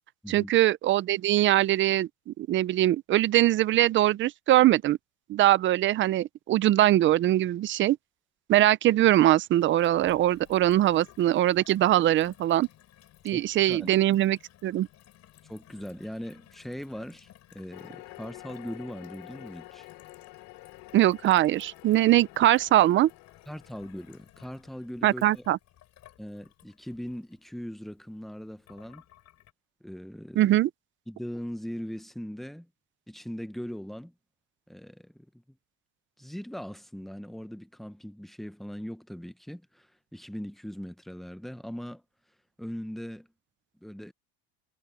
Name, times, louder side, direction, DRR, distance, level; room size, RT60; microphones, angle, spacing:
voice 1, 0.3-5.0 5.3-8.0 8.5-12.7 13.2-14.9 20.9-23.1 25.0-25.6 30.4-30.7, right 14 dB, 30° right, 0.5 m, -22 dB
Gurgling / Water tap faucet / Sink (filling or washing), 9.6-29.5, left 13 dB, 45° left, 6.0 m, -57 dB
voice 2, 13.3-13.9 15.4-19.9 23.5-25.4 26.2-29.0 29.8-30.6 31.1-32.7 33.1-34.1 34.7-35.4 36.2-42.0 42.6-43.3 43.8-44.1, equal, ahead, 0.8 m, -40 dB
sound 1, 17.7-24.2, left 23 dB, 75° left, 3.2 m, -49 dB
cardioid pair, 150°, 38 cm